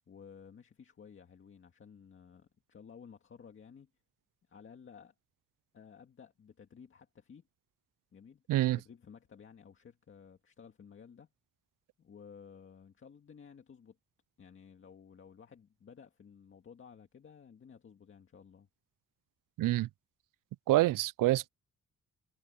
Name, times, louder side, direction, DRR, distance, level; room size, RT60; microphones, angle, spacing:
voice 1, 0.1-3.9 4.5-5.1 5.7-7.4 8.1-8.4 8.8-11.3 12.0-14.0 14.4-18.7, left 6 dB, 40° left, 2.0 m, -55 dB
voice 2, 8.5-8.8 19.6-19.9 20.7-21.5, right 16 dB, 80° right, 0.5 m, -27 dB
wide cardioid pair, 165°, 32 cm